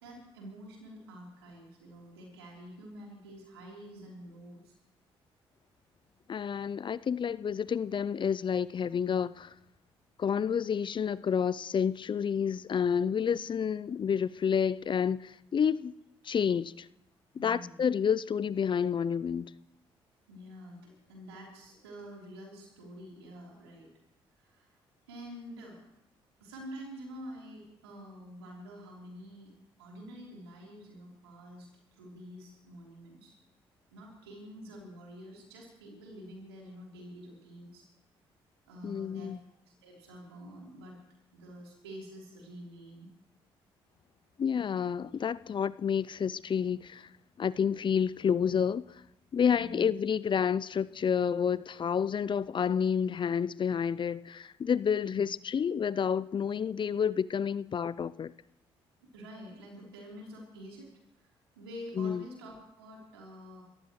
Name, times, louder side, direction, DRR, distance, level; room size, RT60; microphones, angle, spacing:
voice 1, 0.0-4.7 17.4-17.8 20.3-23.9 24.4-24.8 25.1-25.8 26.4-29.5 29.8-33.4 33.9-37.9 38.7-39.4 39.7-41.0 41.3-43.1 49.5-49.9 55.0-55.2 59.0-60.9 61.2-63.6, equal, 90° right, 3.7 m, -48 dB
voice 2, 6.3-9.5 10.2-15.9 16.2-16.9 17.4-19.5 38.8-39.4 44.4-47.1 47.4-48.8 49.3-58.3 62.0-62.2, left 7 dB, 40° left, 0.5 m, -29 dB
27.0 x 14.5 x 3.2 m
hypercardioid pair, 45°, 13 cm